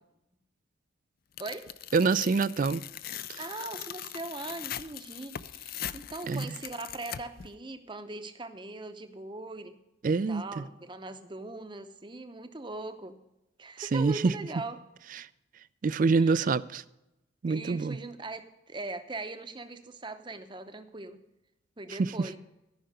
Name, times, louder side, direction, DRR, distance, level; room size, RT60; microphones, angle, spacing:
Tearing, 1.4-7.5, left 10 dB, 45° left, 0.4 m, -41 dB
voice 1, 1.9-2.8 6.3-6.4 10.0-10.4 13.8-14.3 15.2-15.3 15.8-16.8 17.4-18.0 22.0-22.1, right 4 dB, 40° right, 17 dB, 0.3 m, -25 dB
voice 2, 3.4-9.8 10.0-13.2 13.6-14.8 16.2-16.5 17.5-21.2 21.8-22.4, right 2 dB, 25° right, 9 dB, 0.7 m, -40 dB
14.0 x 5.8 x 6.5 m, 0.91 s
head